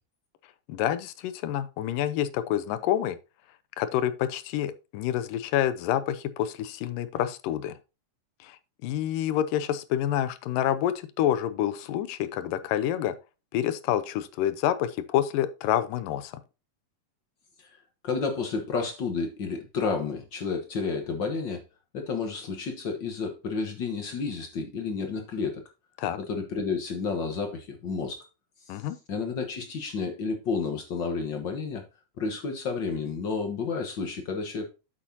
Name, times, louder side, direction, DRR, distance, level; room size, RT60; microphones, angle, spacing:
voice 1, 0.7-3.2 3.8-7.8 8.4-13.2 13.5-16.4 26.0-26.2 28.7-29.0, left 11 dB, 90° left, 2.4 m, -28 dB
voice 2, 18.0-21.6 21.9-25.6 26.3-28.2 29.1-31.8 32.2-34.7, left 4 dB, 65° left, 1.1 m, -31 dB
8.4 x 7.8 x 2.8 m
omnidirectional pair, 3.8 m